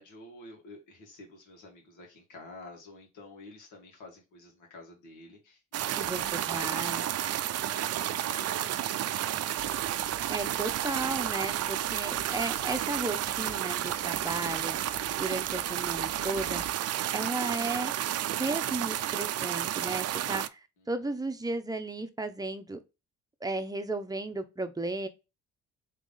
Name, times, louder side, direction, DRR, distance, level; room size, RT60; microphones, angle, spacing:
voice 1, 0.0-7.3 7.7-9.9 20.8-20.9, left 2 dB, 85° left, 2.2 m, -50 dB
sound 1, 5.7-20.5, right 12 dB, 55° right, 0.5 m, -31 dB
voice 2, 6.0-7.0 10.3-14.8 15.2-16.6 17.1-17.9 18.4-20.6 20.9-22.8 23.4-25.1, right 2 dB, 10° right, 0.8 m, -34 dB
sound 2, 9.5-16.7, left 3 dB, 65° left, 2.4 m, -51 dB
3.7 x 3.6 x 3.9 m
cardioid pair, 90°, 30 cm